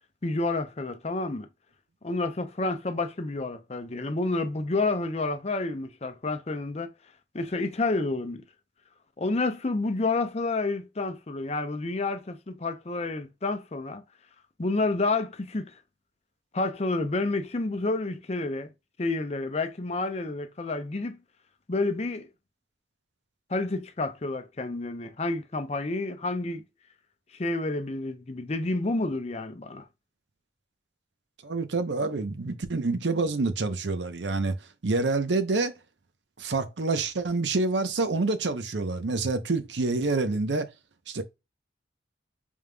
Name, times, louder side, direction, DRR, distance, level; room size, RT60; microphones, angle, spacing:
voice 1, 0.2-1.5 2.0-6.9 7.3-8.4 9.2-14.0 14.6-15.7 16.5-18.7 19.0-21.2 21.7-22.3 23.5-26.6 27.3-29.9, left 2 dB, 35° left, 0.6 m, -29 dB
voice 2, 31.4-34.6 34.8-35.7 36.4-40.7 41.1-41.2, right 3 dB, 90° right, 0.7 m, -27 dB
5.1 x 3.5 x 2.2 m
head